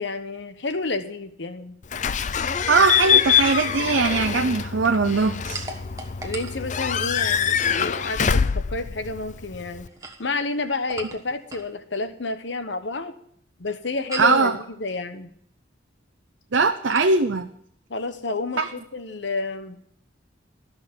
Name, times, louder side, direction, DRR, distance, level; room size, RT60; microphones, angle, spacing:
voice 1, 0.0-1.8 2.8-3.2 6.2-9.9 10.2-13.2 13.6-15.3 17.9-19.8, left 3 dB, 65° left, 10 dB, 1.2 m, -30 dB
Slam / Squeak / Alarm, 1.9-9.9, left 7 dB, 40° left, 0.5 m, -24 dB
voice 2, 2.7-5.7 14.2-14.6 16.5-17.5 18.6-18.7, right 4 dB, 75° right, 6 dB, 0.7 m, -20 dB
sound 1, 5.5-7.3 9.8-11.8 14.1-14.5 16.9-17.2, right 2 dB, 15° right, 1.3 m, -38 dB
13.5 x 6.2 x 9.6 m, 0.68 s
head